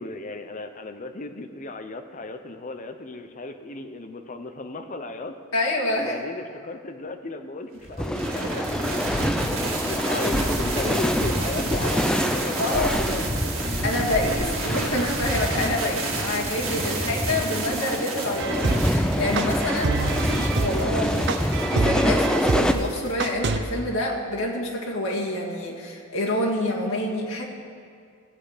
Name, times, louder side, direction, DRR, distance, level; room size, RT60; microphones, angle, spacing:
voice 1, 0.0-5.4 6.0-9.5 9.8-13.3 13.5-13.6 14.4-14.5 19.8-20.9, left 2 dB, 40° left, 7 dB, 0.7 m, -35 dB
voice 2, 5.5-6.2 12.6-13.0 13.8-19.9 20.3-27.4, left 1 dB, 85° left, -2 dB, 1.9 m, -27 dB
sound 1, 7.8-23.1, right 2 dB, 70° right, 2.0 m, -30 dB
sound 2, 8.0-22.7, equal, 5° left, 0.4 m, -27 dB
sound 3, 18.4-23.6, right 3 dB, 55° right, 0.6 m, -26 dB
15.0 x 8.0 x 5.0 m, 2.2 s
head